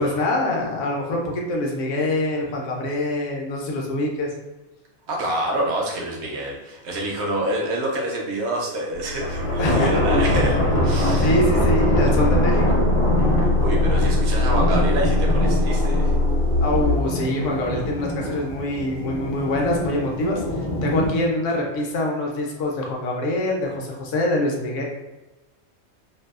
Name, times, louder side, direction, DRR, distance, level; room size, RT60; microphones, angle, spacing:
voice 1, 0.0-4.3 9.6-10.2 11.2-12.8 16.6-20.4 20.8-24.8, left 1 dB, 65° left, -1 dB, 0.8 m, -24 dB
voice 2, 5.1-11.4 13.4-16.1, right 1 dB, 65° right, -1 dB, 0.7 m, -27 dB
sound 1, 8.9-17.0, left 2 dB, 85° right, 1.1 m, -22 dB
sound 2, 9.2-21.1, equal, 40° left, 0.5 m, -24 dB
2.7 x 2.2 x 2.3 m, 1.1 s
omnidirectional pair, 1.5 m